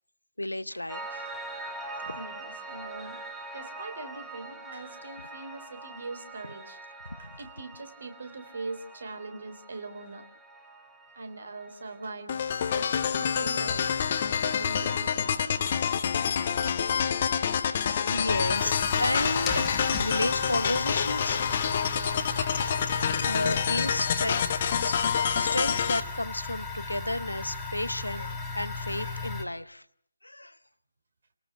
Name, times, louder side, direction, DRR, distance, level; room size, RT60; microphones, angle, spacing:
voice 1, 0.4-1.3 2.0-2.2 7.2-7.3 17.9-21.4 23.2-24.5 24.8-29.8 30.2-30.6, left 1 dB, 80° left, 13 dB, 1.1 m, -32 dB
Piano, 0.9-12.1, right 2 dB, 5° right, 1.5 m, -43 dB
voice 2, 2.1-3.2 3.5-6.8 7.2-10.3 11.1-12.4 12.7-14.0 14.4-15.8, right 3 dB, 50° right, 8 dB, 3.5 m, -42 dB
sound 1, 12.3-26.0, left 7 dB, 30° left, 1.2 m, -27 dB
sound 2, 18.3-29.4, left 3 dB, 10° left, 1.8 m, -36 dB
29.0 x 19.0 x 6.0 m, 0.65 s
figure-of-eight pair, 150°, 0 cm